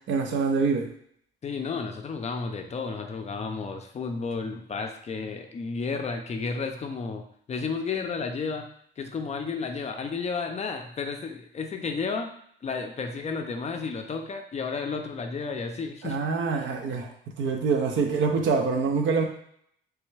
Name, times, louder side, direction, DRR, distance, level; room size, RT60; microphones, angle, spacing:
voice 1, 0.1-0.9 16.0-17.1 17.4-19.2, right 5 dB, 70° right, 4 dB, 0.6 m, -25 dB
voice 2, 1.4-7.2 7.5-8.6 9.0-12.3 12.6-16.2, left 4 dB, 35° left, 5 dB, 0.4 m, -32 dB
3.2 x 2.2 x 3.2 m, 0.67 s
cardioid pair, 90°, 20 cm